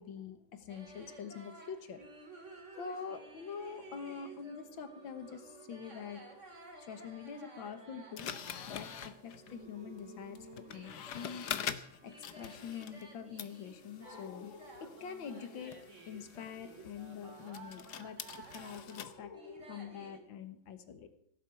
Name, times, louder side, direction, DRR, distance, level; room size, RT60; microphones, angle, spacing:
voice 1, 0.0-2.0 2.7-6.2 6.8-8.3 8.7-11.7 12.0-18.2 18.5-21.1, left 7 dB, 90° left, 10 dB, 2.1 m, -45 dB
sound 1, 0.7-20.2, right 3 dB, 40° right, 2.5 m, -53 dB
sound 2, 8.2-13.1 13.4-19.1, left 9 dB, 65° left, 1.4 m, -45 dB
17.0 x 7.9 x 8.3 m, 0.68 s
omnidirectional pair, 2.0 m